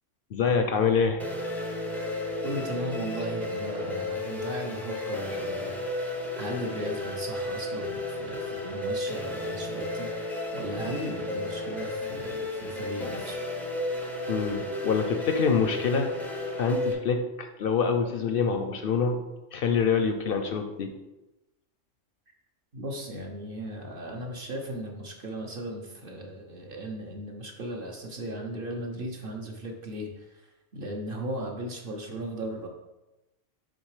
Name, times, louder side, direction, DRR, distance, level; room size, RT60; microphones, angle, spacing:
voice 1, 0.3-1.2 14.3-16.1 16.6-19.2 19.5-20.9, left 5 dB, 60° left, 6 dB, 0.6 m, -26 dB
sound 1, 1.2-16.9, left 1 dB, ahead, 0.5 m, -33 dB
voice 2, 2.4-13.4 22.7-32.7, right 1 dB, 50° right, 1 dB, 0.9 m, -37 dB
6.4 x 3.6 x 4.8 m, 1.0 s
omnidirectional pair, 1.3 m